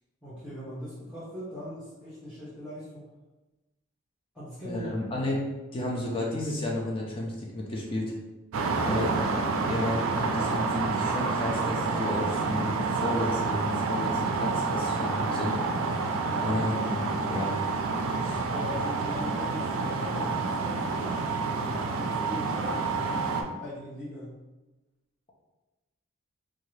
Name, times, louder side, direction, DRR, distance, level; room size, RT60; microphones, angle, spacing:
voice 1, 0.2-3.0 4.3-4.9 8.8-9.1 16.3-16.5 18.5-24.4, left 1 dB, 5° left, -12 dB, 0.8 m, -41 dB
voice 2, 4.6-5.4 5.7-8.1 8.8-9.1 9.6-15.6 16.4-17.5 18.2-18.4, left 1 dB, 25° left, -2 dB, 0.4 m, -32 dB
sound 1, 8.5-23.4, right 4 dB, 65° right, 0.3 m, -28 dB
2.7 x 2.3 x 3.1 m, 1.1 s
head